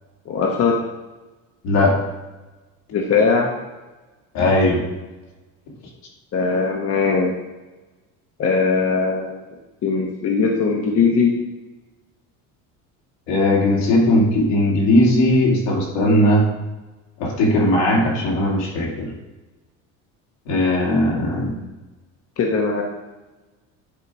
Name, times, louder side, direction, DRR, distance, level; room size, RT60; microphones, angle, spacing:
voice 1, 0.2-0.8 2.9-3.5 6.3-7.3 8.4-9.4 9.8-11.3 22.4-22.8, left 4 dB, 40° left, 1 dB, 1.2 m, -19 dB
voice 2, 1.6-2.0 4.3-4.8 13.3-16.4 17.2-19.1 20.5-21.5, left 1 dB, 80° left, -3 dB, 2.7 m, -18 dB
10.0 x 3.8 x 4.8 m, 1.1 s
supercardioid pair, 110°, 35 cm